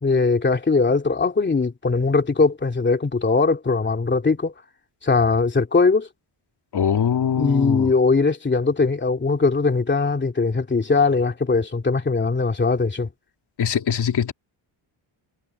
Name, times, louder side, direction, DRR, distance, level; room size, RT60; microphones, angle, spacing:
voice 1, 0.0-4.5 5.0-6.1 7.4-13.1, left 4 dB, 20° left, 2.7 m, -20 dB
voice 2, 6.7-7.9 13.6-14.3, left 8 dB, 50° left, 2.8 m, -22 dB
cardioid pair, 150°, 50 cm